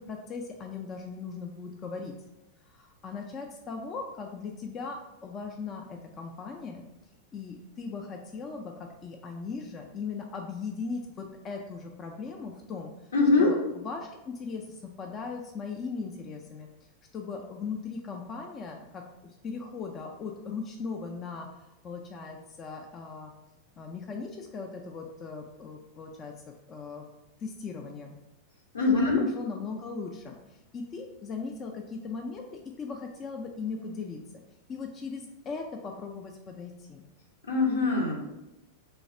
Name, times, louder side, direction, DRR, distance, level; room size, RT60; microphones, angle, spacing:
voice 1, 0.0-2.2 2.7-6.9 7.3-12.9 13.4-16.7 17.1-21.5 21.8-23.3 23.8-27.1 27.4-28.1 28.9-34.2 34.7-37.0, left 4 dB, 25° left, 2 dB, 0.3 m, -38 dB
voice 2, 13.1-13.5 28.7-29.2 37.4-38.3, left 3 dB, 70° left, 0 dB, 0.7 m, -23 dB
3.2 x 2.3 x 4.2 m, 0.94 s
figure-of-eight pair, 90°, 0 cm